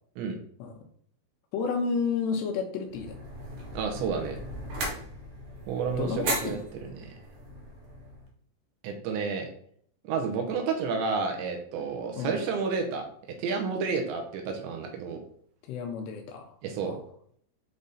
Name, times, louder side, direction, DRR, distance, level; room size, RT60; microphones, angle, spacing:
voice 1, 1.5-3.2 6.0-6.6 12.2-12.4 15.7-16.5 16.8-17.0, left 5 dB, 80° left, 4 dB, 2.6 m, -31 dB
sound 1, 2.9-8.3, right 2 dB, 65° right, 2.6 m, -37 dB
voice 2, 3.7-4.4 5.7-6.6 7.0-7.1 8.8-9.5 10.0-13.1 13.4-15.2 16.6-17.0, right 5 dB, 80° right, 4 dB, 3.0 m, -30 dB
7.8 x 3.5 x 4.1 m, 0.63 s
omnidirectional pair, 5.4 m